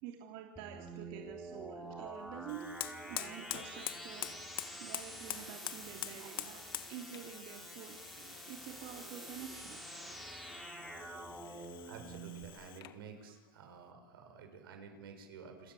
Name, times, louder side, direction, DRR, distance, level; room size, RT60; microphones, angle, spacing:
voice 1, 0.0-4.3 4.7-10.2 10.8-11.7 12.0-12.1 13.2-13.3, right 9 dB, 60° right, 3 dB, 3.3 m, -49 dB
sound 1, 0.6-12.4, right 1 dB, ahead, 6.4 m, -48 dB
Fire, 2.5-13.0, left 14 dB, 80° left, 1.8 m, -46 dB
voice 2, 11.1-15.7, right 5 dB, 85° right, 4 dB, 7.6 m, -52 dB
29.0 x 26.0 x 7.8 m, 1.1 s
supercardioid pair, 120°, 12 cm